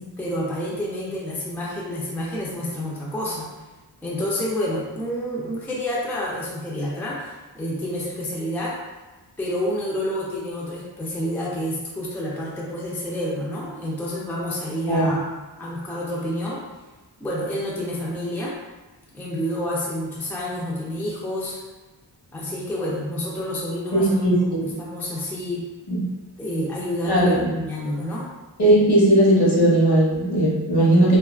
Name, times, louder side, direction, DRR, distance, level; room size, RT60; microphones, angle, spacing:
voice 1, 0.2-3.5 4.0-8.8 9.4-15.2 15.6-16.6 17.2-18.5 19.1-21.6 22.3-25.7 26.4-28.3, equal, 5° left, -5 dB, 0.4 m, -29 dB
voice 2, 23.9-24.6 25.9-26.0 27.0-27.4 28.6-31.2, right 1 dB, 60° left, -6 dB, 0.9 m, -17 dB
2.4 x 2.3 x 2.3 m, 1.2 s
wide cardioid pair, 85°, 44 cm